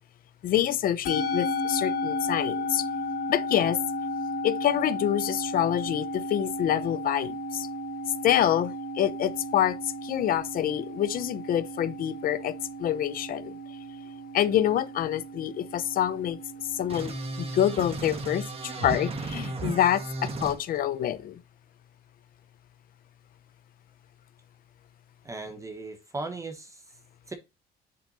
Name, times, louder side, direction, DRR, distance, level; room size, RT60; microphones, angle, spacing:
voice 1, 0.4-2.9 3.3-3.8 4.4-7.7 8.2-12.5 12.8-13.6 14.3-16.4 16.7-21.4, left 11 dB, 60° left, 0.8 m, -26 dB
Musical instrument, 1.0-19.5, left 1 dB, 75° left, 3.9 m, -34 dB
sound 1, 16.9-20.5, right 2 dB, 35° right, 1.7 m, -34 dB
voice 2, 25.2-27.0 27.3-27.4, right 3 dB, 20° right, 1.2 m, -37 dB
7.9 x 6.9 x 2.7 m
cardioid pair, 110°, 17 cm